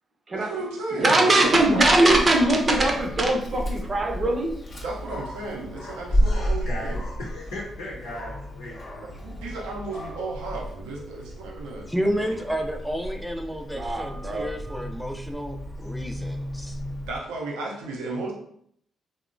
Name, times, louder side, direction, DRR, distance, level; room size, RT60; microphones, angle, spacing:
voice 1, 0.4-1.8 4.8-7.0 9.0-11.9 12.2-12.4 17.1-18.3, right 2 dB, 80° right, -1 dB, 0.5 m, -34 dB
voice 2, 1.0-4.5 13.7-14.5 14.7-14.9, right 2 dB, 40° right, 1 dB, 0.6 m, -21 dB
Dog, 1.4-17.2, equal, 45° left, 0.6 m, -32 dB
voice 3, 6.2-9.0, left 1 dB, 85° left, -7 dB, 0.7 m, -37 dB
voice 4, 11.9-16.8, equal, ahead, 4 dB, 0.4 m, -31 dB
2.8 x 2.0 x 2.5 m, 0.68 s
hypercardioid pair, 45°, 0 cm